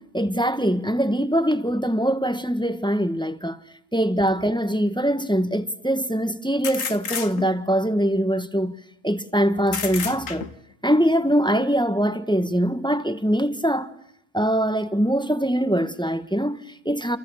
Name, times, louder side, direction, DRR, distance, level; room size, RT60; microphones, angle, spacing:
voice 1, 0.0-3.6 3.9-8.8 9.0-10.5 10.8-13.9 14.3-17.2, equal, 5° left, 1.5 m, -23 dB
sound 1, 4.2-4.3 6.6-7.7 9.7-10.7, left 6 dB, 65° left, 1.8 m, -30 dB
29.5 x 29.5 x 6.5 m
omnidirectional pair, 1.5 m